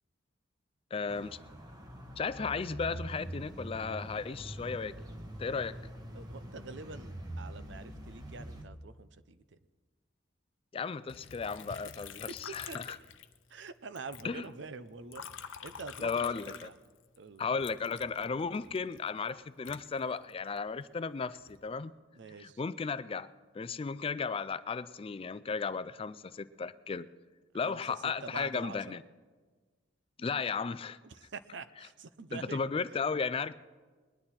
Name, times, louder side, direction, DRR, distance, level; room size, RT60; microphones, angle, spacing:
voice 1, 0.9-1.4 2.2-4.9 5.4-5.8 10.7-13.0 14.2-14.4 16.0-16.7 17.4-21.9 22.4-23.3 23.5-27.1 27.5-29.0 30.2-31.0 32.3-33.5, left 5 dB, 30° left, 15 dB, 0.3 m, -35 dB
sound 1, 1.1-8.6, right 1 dB, 20° right, 1.1 m, -44 dB
voice 2, 6.1-9.6 11.7-11.8 12.5-13.0 13.5-16.7 17.2-17.4 22.1-22.6 27.6-29.0 31.0-32.6, right 4 dB, 65° right, 13 dB, 0.6 m, -46 dB
Liquid, 11.1-13.7 14.0-17.2 17.6-20.6 21.2-21.7, left 8 dB, 80° left, 0.7 m, -47 dB
21.0 x 10.5 x 4.3 m, 1.4 s
head